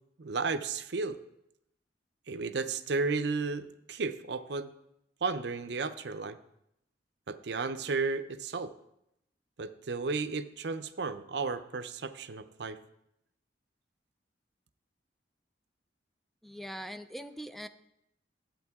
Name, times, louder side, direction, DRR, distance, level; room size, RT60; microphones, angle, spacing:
voice 1, 0.2-1.2 2.3-4.7 5.2-6.4 7.3-8.7 9.6-12.8, right 4 dB, 65° right, 10 dB, 0.6 m, -33 dB
voice 2, 16.4-17.7, equal, ahead, 10 dB, 0.4 m, -42 dB
12.0 x 8.9 x 3.6 m, 0.82 s
head